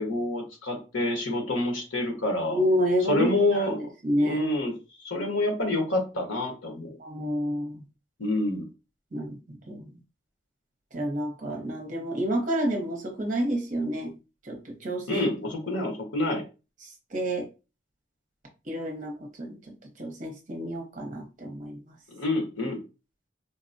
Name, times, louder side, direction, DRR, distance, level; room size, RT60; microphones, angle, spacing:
voice 1, 0.0-2.6 3.1-3.9 4.2-7.0 8.2-8.7 15.1-16.4 22.1-22.8, left 2 dB, 85° left, 2 dB, 1.1 m, -27 dB
voice 2, 2.5-3.3 3.6-3.7 4.0-4.5 7.0-7.8 9.1-9.9 10.9-14.1 14.4-15.3 17.1-17.5 18.7-19.1 19.4-19.6 20.0-21.8, equal, 40° right, 2 dB, 0.7 m, -29 dB
3.9 x 2.1 x 2.6 m, 0.30 s
head